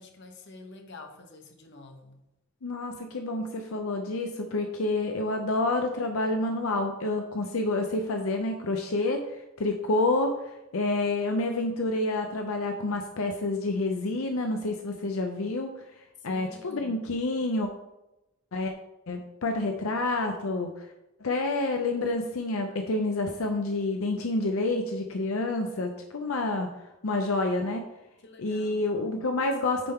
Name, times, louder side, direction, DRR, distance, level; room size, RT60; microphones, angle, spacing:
voice 1, 0.0-2.2 16.2-17.1 28.2-28.8, left 2 dB, 55° left, 4 dB, 1.0 m, -48 dB
voice 2, 2.6-15.7 16.2-17.7 18.5-18.7 19.1-20.9 21.2-26.7 27.0-27.8 28.4-29.9, left 2 dB, 80° left, 4 dB, 0.6 m, -28 dB
9.1 x 3.6 x 4.4 m, 0.93 s
head